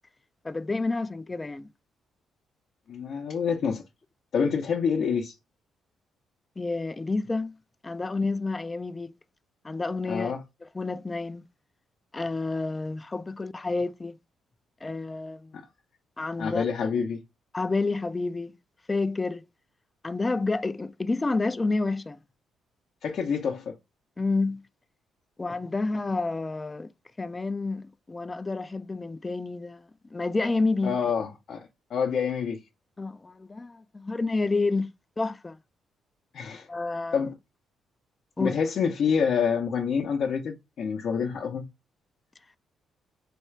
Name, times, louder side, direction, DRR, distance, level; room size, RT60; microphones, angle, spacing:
voice 1, 0.4-1.7 6.6-7.6 7.8-9.2 9.6-10.4 10.6-11.5 12.1-14.2 14.8-15.5 16.2-16.6 17.5-18.6 18.9-19.4 20.0-22.2 24.2-24.6 25.4-26.9 27.2-29.8 30.1-31.0 33.0-34.9 35.2-35.6 36.7-37.3 38.4-38.6, left 3 dB, 20° left, 0.3 m, -29 dB
voice 2, 2.9-3.8 4.3-5.4 10.1-10.4 15.5-15.6 16.4-17.2 23.0-23.7 30.8-32.6 36.3-36.7 37.1-37.3 38.4-41.7, left 6 dB, 60° left, 0.6 m, -27 dB
4.2 x 2.3 x 3.2 m
cardioid pair, 90°, 0 cm